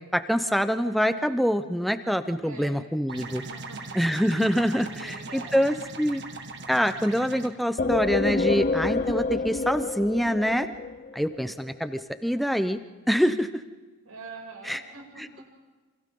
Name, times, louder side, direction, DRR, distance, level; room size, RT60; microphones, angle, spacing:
voice 1, 0.0-3.4 4.0-6.2 6.7-10.7 11.1-12.8 13.1-13.6 14.7-14.8, equal, ahead, 9 dB, 0.8 m, -25 dB
voice 2, 2.3-2.7 3.5-4.0 4.9-5.6 14.0-15.2, right 3 dB, 80° right, -1 dB, 7.1 m, -44 dB
sound 1, 3.1-7.5, right 3 dB, 50° right, 1.7 m, -39 dB
sound 2, 7.8-11.4, left 3 dB, 40° left, 0.6 m, -27 dB
28.5 x 27.0 x 3.9 m, 1.3 s
head